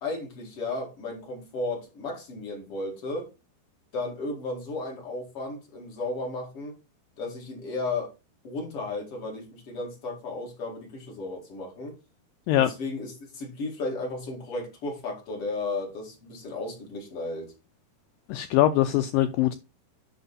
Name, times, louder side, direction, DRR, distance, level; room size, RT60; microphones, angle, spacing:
voice 1, 0.0-3.3 3.9-6.8 7.2-8.1 8.4-11.9 12.6-17.5, left 2 dB, 40° left, 2.8 m, -34 dB
voice 2, 18.3-19.5, left 13 dB, 85° left, 2.0 m, -22 dB
10.5 x 3.8 x 4.1 m
omnidirectional pair, 4.5 m